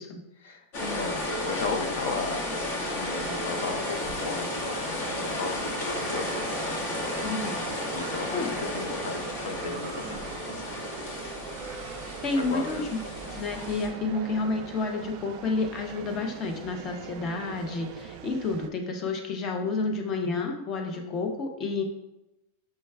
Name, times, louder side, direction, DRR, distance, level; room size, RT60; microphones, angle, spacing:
voice 1, 0.4-6.4 7.9-10.6 12.4-12.9 13.9-14.4 19.6-19.9, left 4 dB, 75° left, 5 dB, 0.6 m, -36 dB
sound 1, 0.7-13.9, left 1 dB, 55° left, 1.0 m, -33 dB
sound 2, 3.2-18.7, right 7 dB, 40° right, 0.3 m, -42 dB
voice 2, 7.2-7.5 8.3-8.5 12.2-12.9 13.3-21.8, left 3 dB, 25° left, 3 dB, 0.6 m, -30 dB
6.3 x 2.2 x 3.3 m, 0.92 s
supercardioid pair, 170°, 0 cm